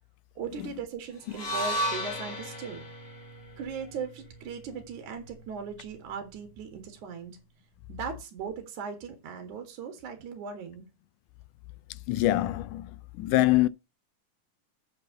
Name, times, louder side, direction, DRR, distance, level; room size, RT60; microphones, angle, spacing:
voice 1, 0.4-2.8 3.6-7.4 7.9-10.8, right 6 dB, 65° right, 3.2 m, -38 dB
sound 1, 1.3-5.5, equal, 55° left, 3.8 m, -35 dB
voice 2, 12.1-13.7, left 17 dB, 80° left, 2.0 m, -24 dB
8.4 x 4.6 x 6.8 m
omnidirectional pair, 3.9 m